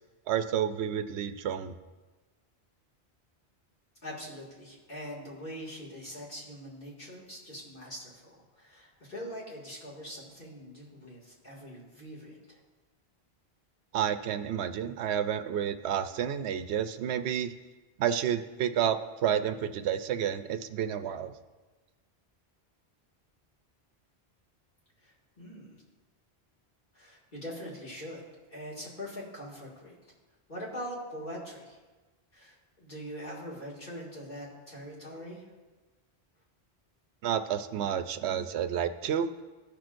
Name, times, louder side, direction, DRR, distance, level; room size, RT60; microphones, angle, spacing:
voice 1, 0.3-1.8 13.9-17.5 18.0-21.3 37.2-39.3, right 9 dB, 85° right, 9 dB, 0.8 m, -30 dB
voice 2, 4.0-12.6 25.0-25.8 26.9-28.2 28.5-30.1 30.5-31.8 32.3-35.4, equal, 50° left, -6 dB, 2.3 m, -43 dB
16.5 x 6.0 x 2.6 m, 1.2 s
omnidirectional pair, 1.1 m